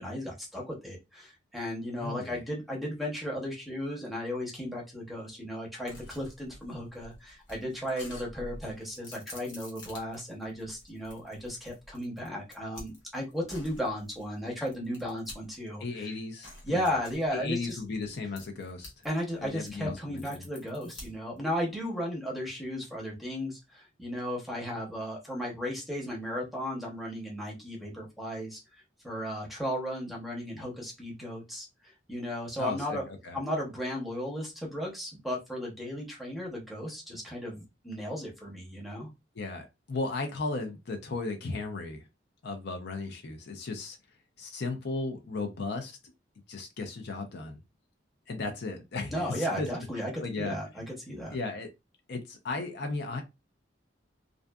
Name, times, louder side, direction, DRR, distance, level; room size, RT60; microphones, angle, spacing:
voice 1, 0.0-16.1 16.6-17.8 19.0-28.6 29.0-33.0 33.3-39.1 49.1-51.4, equal, ahead, 0.8 m, -35 dB
voice 2, 2.0-2.4 15.8-16.9 17.3-18.9 19.4-20.4 32.6-33.4 39.4-42.0 42.4-44.0 44.4-46.0 46.5-47.6 48.3-49.7 50.2-50.6 51.3-51.7 52.1-53.2, left 3 dB, 60° left, 0.5 m, -35 dB
sound 1, 5.9-15.8 16.4-19.1 19.4-21.4, left 1 dB, 85° left, 1.0 m, -48 dB
2.5 x 2.4 x 2.2 m
head